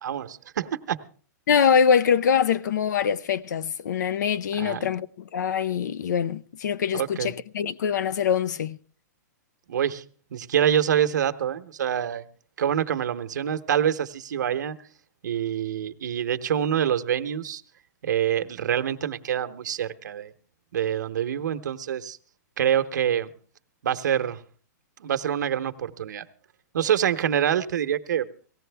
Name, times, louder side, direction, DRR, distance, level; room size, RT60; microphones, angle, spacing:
voice 1, 0.0-1.0 4.6-4.8 6.9-7.3 9.7-10.0 10.3-12.2 12.6-14.8 15.2-17.6 18.0-20.3 20.7-22.2 22.6-23.3 23.8-24.4 25.0-26.2 26.7-28.3, right 9 dB, 75° right, 0.9 m, -26 dB
voice 2, 1.5-8.8, left 7 dB, 75° left, 0.6 m, -24 dB
18.0 x 15.5 x 3.4 m
hypercardioid pair, 170°, 10 cm